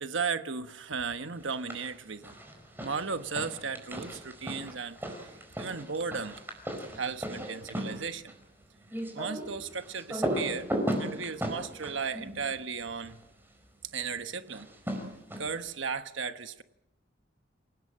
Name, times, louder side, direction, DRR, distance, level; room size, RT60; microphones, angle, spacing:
voice 1, 0.0-2.4 2.8-6.4 6.9-8.4 9.1-10.7 11.0-13.2 13.9-14.7 15.4-16.6, right 5 dB, 85° right, 1.2 m, -35 dB
sound 1, 1.4-1.9 2.2-13.2 14.5-15.7, equal, 10° right, 4.8 m, -37 dB
28.5 x 18.0 x 7.6 m
head